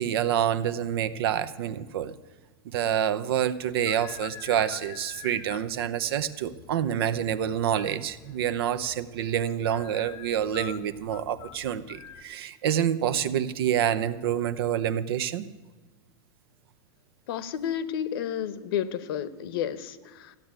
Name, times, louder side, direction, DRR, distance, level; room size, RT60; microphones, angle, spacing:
voice 1, 0.0-2.1 2.6-15.4, right 9 dB, 70° right, 13 dB, 0.9 m, -27 dB
sound 1, 3.6-12.2, left 10 dB, 30° left, 0.8 m, -47 dB
voice 2, 17.3-20.4, left 9 dB, 70° left, 14 dB, 1.0 m, -31 dB
15.0 x 8.3 x 8.9 m, 1.3 s
supercardioid pair, 150°, 13 cm